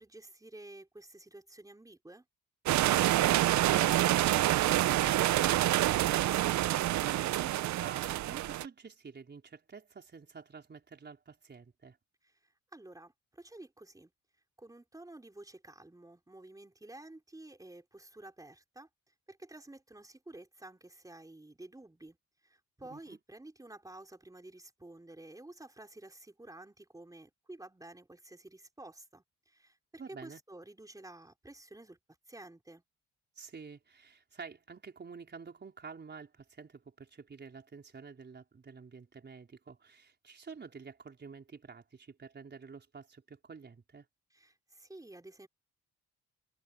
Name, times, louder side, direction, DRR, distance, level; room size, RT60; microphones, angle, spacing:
voice 1, 0.0-2.3 12.2-14.1 14.6-18.9 19.3-22.2 22.4-32.0 32.3-32.8 44.3-45.5, right 2 dB, 10° right, 4.3 m, -51 dB
sound 1, 2.7-8.7, right 15 dB, 70° right, 0.6 m, -27 dB
voice 2, 3.3-12.0 22.8-23.2 30.0-30.4 33.4-44.1, right 5 dB, 35° right, 4.6 m, -49 dB
cardioid pair, 90°, 30 cm